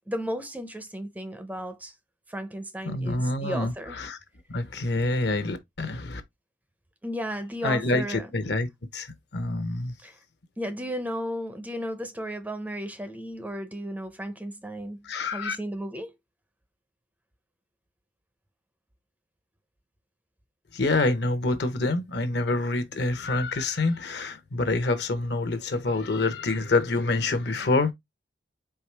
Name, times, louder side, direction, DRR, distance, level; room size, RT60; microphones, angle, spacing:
voice 1, 0.1-2.0 2.3-4.0 7.0-8.3 10.0-10.2 10.6-15.1 15.3-16.1, equal, 10° right, 0.5 m, -34 dB
voice 2, 2.8-4.2 4.5-6.2 7.6-9.9 15.0-15.6 20.7-27.9, left 2 dB, 60° left, 0.8 m, -27 dB
4.7 x 3.2 x 3.2 m
head